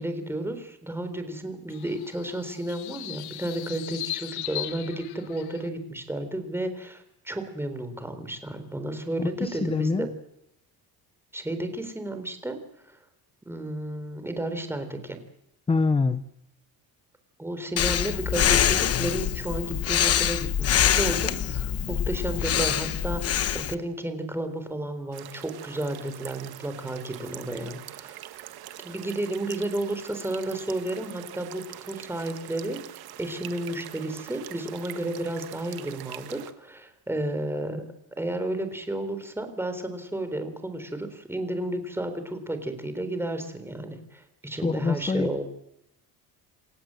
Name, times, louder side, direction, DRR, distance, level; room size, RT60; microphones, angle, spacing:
voice 1, 0.0-10.1 11.3-12.6 12.8-13.0 13.5-15.2 17.4-28.2 28.8-32.8 33.2-37.8 38.2-45.4, right 1 dB, 5° right, 8 dB, 3.8 m, -32 dB
sound 1, 1.7-5.7, left 14 dB, 75° left, 1.5 m, -38 dB
voice 2, 9.2-10.1 15.7-16.3 44.5-45.3, left 4 dB, 15° left, 13 dB, 0.8 m, -25 dB
Breathing, 17.8-23.7, left 9 dB, 40° left, 1.1 m, -25 dB
sound 2, 25.1-36.5, right 13 dB, 70° right, 1.7 m, -43 dB
28.5 x 15.5 x 7.8 m, 0.82 s
cardioid pair, 145°, 39 cm